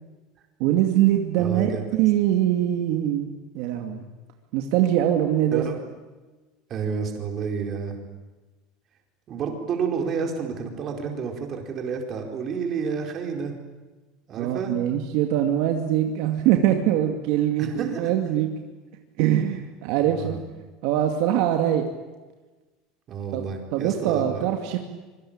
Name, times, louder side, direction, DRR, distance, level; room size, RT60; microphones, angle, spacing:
voice 1, 0.6-3.3 3.5-4.0 4.5-5.6 14.4-18.5 19.2-20.4 20.8-21.9 23.3-23.5 23.7-24.8, right 11 dB, 55° right, 4 dB, 2.4 m, -23 dB
voice 2, 1.4-1.8 5.5-5.8 6.7-8.0 9.3-13.5 14.3-14.7 17.6-18.1 20.0-20.4 23.1-24.5, right 5 dB, 30° right, 3 dB, 4.5 m, -30 dB
25.5 x 24.0 x 8.9 m, 1.2 s
cardioid pair, 175°, 0 cm